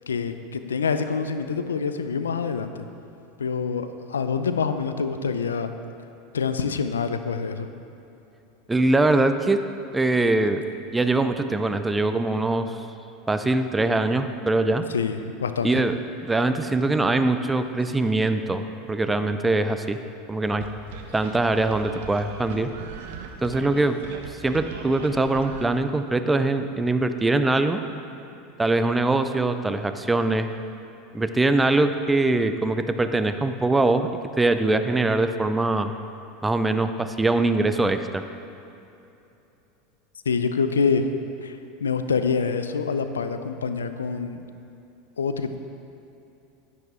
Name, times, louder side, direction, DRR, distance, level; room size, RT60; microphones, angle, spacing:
voice 1, 0.1-2.7 3.4-5.7 6.3-7.7 14.9-15.7 40.3-41.1 41.4-44.4 45.2-45.5, left 5 dB, 85° left, 9 dB, 0.5 m, -26 dB
voice 2, 8.7-9.6 9.9-10.6 10.9-12.8 13.3-14.8 15.6-15.9 16.2-20.0 20.3-20.6 21.1-22.7 23.4-24.0 24.4-27.8 28.6-30.5 31.1-34.1 34.4-35.9 36.4-38.2, right 2 dB, 10° right, 9 dB, 0.6 m, -22 dB
sound 1, 20.6-25.7, right 6 dB, 65° right, 1.0 m, -39 dB
10.5 x 10.5 x 3.7 m, 2.8 s
hypercardioid pair, 85°, 0 cm